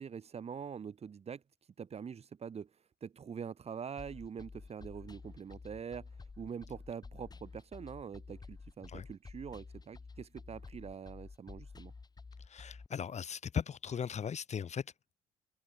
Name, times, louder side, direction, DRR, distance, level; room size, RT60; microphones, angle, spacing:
voice 1, 0.0-1.4 1.8-2.7 3.0-6.0 6.4-11.9, right 7 dB, 40° right, 3.8 m, -44 dB
sound 1, 4.0-12.9, left 4 dB, 25° left, 6.5 m, -51 dB
voice 2, 12.4-14.9, left 7 dB, 40° left, 6.9 m, -38 dB
open air
cardioid pair, 110°, 17 cm